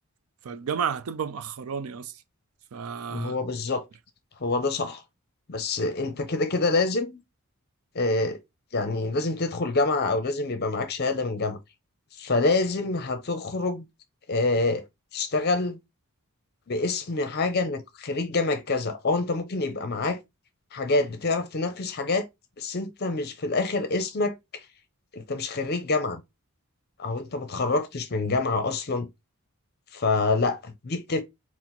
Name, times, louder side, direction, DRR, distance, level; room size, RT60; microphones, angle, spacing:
voice 1, 0.4-2.1 2.7-3.4, right 7 dB, 75° right, 0.4 m, -31 dB
voice 2, 3.1-3.8 4.4-5.0 5.5-7.2 7.9-8.4 8.7-11.6 12.2-13.8 14.3-14.8 15.1-15.8 16.7-20.2 20.7-22.3 22.6-24.3 25.1-26.2 27.0-29.1 29.9-31.2, left 3 dB, 45° left, 0.6 m, -26 dB
4.4 x 2.1 x 3.8 m
head